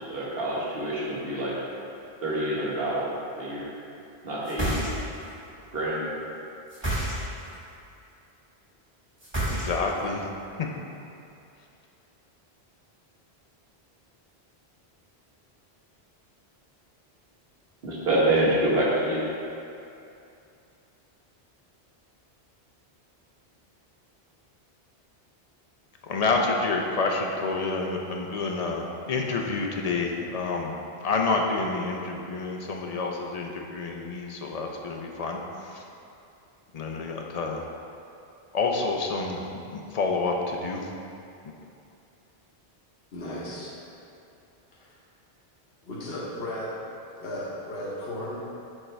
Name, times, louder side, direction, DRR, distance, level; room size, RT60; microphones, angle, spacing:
voice 1, 0.0-1.6 2.2-3.1 3.4-3.7 4.2-4.7 5.7-6.1 17.8-19.2, right 1 dB, 65° right, -6 dB, 1.4 m, -26 dB
sound 1, 4.4-5.3 6.7-7.5 9.2-10.0, right 1 dB, 25° right, 1.6 m, -29 dB
voice 2, 9.5-10.3 10.6-10.7 26.0-30.8 31.0-35.8 36.7-37.6 38.5-39.4 39.7-40.9, left 3 dB, 50° left, 0 dB, 0.5 m, -28 dB
voice 3, 43.1-43.7 44.7-45.0 45.8-46.8 47.2-48.4, left 1 dB, 70° left, -7 dB, 1.2 m, -35 dB
6.4 x 4.5 x 3.3 m, 2.6 s
omnidirectional pair, 1.1 m